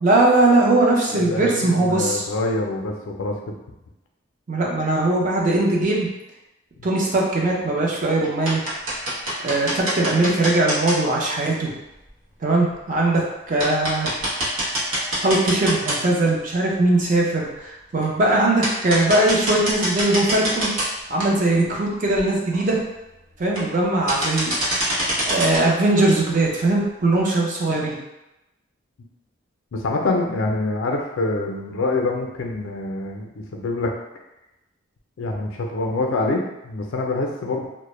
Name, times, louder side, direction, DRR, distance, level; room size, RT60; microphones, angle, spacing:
voice 1, 0.0-2.3 4.5-6.1 6.8-8.6 9.4-11.7 12.4-13.2 13.5-14.1 15.2-20.7 21.1-22.8 23.4-24.5 25.3-28.0, right 2 dB, 40° right, -3 dB, 0.4 m, -20 dB
voice 2, 1.1-3.4 29.7-33.9 35.2-37.7, left 2 dB, 75° left, 1 dB, 0.4 m, -25 dB
sound 1, 7.5-7.9 8.2-11.0 12.1-12.2 12.7-12.8 13.2-13.3 13.6-16.3 16.7-16.8 18.0-18.1 18.6-20.9 21.2-21.3 21.8-21.9 22.1-22.2 22.5-22.8 23.4-23.8 24.1-25.6, right 1 dB, 90° right, 0.7 m, -25 dB
2.1 x 2.0 x 3.0 m, 0.94 s
head